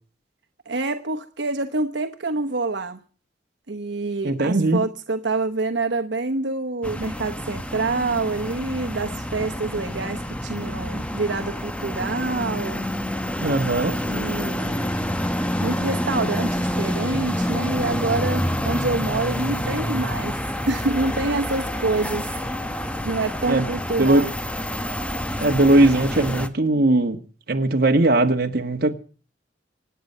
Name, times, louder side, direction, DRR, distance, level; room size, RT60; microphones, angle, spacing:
voice 1, 0.7-3.0 3.7-12.8 14.1-14.9 15.6-20.3 20.7-22.3 23.0-24.3, right 3 dB, 80° right, 1.1 m, -26 dB
voice 2, 4.2-4.8 13.4-14.0 23.5-23.7 24.0-24.2 25.4-27.2 27.5-28.9, right 2 dB, 60° right, 1.6 m, -19 dB
sound 1, 6.8-26.5, equal, 5° left, 0.9 m, -28 dB
25.5 x 9.6 x 5.6 m
head